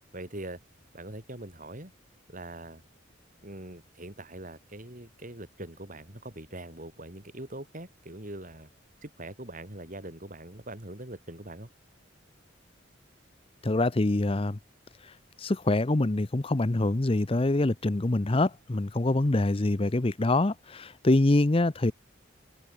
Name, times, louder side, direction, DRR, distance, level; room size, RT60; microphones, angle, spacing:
voice 1, 0.1-0.6 0.9-1.9 2.3-2.8 3.4-8.7 9.0-11.7, right 1 dB, 40° right, 5.9 m, -42 dB
voice 2, 13.6-14.6 15.4-21.9, left 2 dB, 30° left, 0.7 m, -25 dB
head